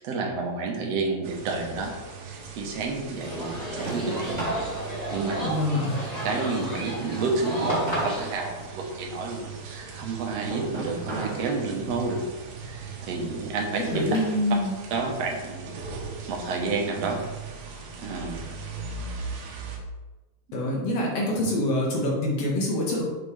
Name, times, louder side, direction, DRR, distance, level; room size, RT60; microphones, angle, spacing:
voice 1, 0.0-1.9 2.2-4.4 5.1-5.5 6.3-12.2 12.6-13.8 14.9-15.8 16.3-17.2 18.0-18.4, right 3 dB, 65° right, 1 dB, 2.0 m, -30 dB
sound 1, 1.2-19.8, right 5 dB, 85° right, 2.5 m, -39 dB
sound 2, 1.6-4.7 5.1-8.3 8.6-11.5 11.8-12.2 12.8-14.4 14.8-15.9, right 1 dB, 20° right, 2.2 m, -37 dB
sound 3, 3.2-8.3, equal, 25° left, 0.9 m, -33 dB
voice 2, 5.4-6.0 13.8-14.8 20.5-23.0, left 1 dB, 60° left, -3 dB, 2.5 m, -25 dB
6.7 x 6.2 x 3.3 m, 1.1 s
omnidirectional pair, 3.5 m